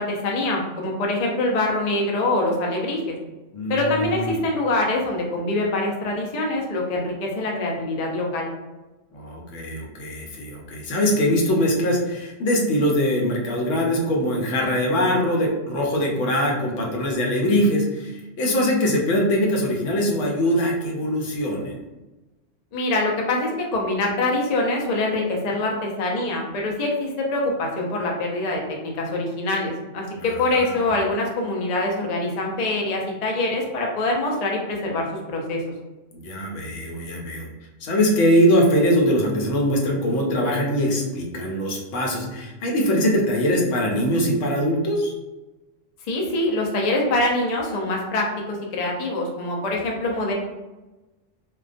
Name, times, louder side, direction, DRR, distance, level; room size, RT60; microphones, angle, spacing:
voice 1, 0.0-3.1 3.7-8.5 22.7-35.6 46.1-50.3, left 2 dB, 60° left, -1 dB, 0.4 m, -24 dB
voice 2, 3.5-4.3 9.1-18.1 18.4-21.8 30.2-30.3 30.5-30.9 36.1-37.5 37.8-45.1, equal, 80° left, -1 dB, 1.0 m, -22 dB
2.3 x 2.2 x 2.4 m, 1.1 s
omnidirectional pair, 1.2 m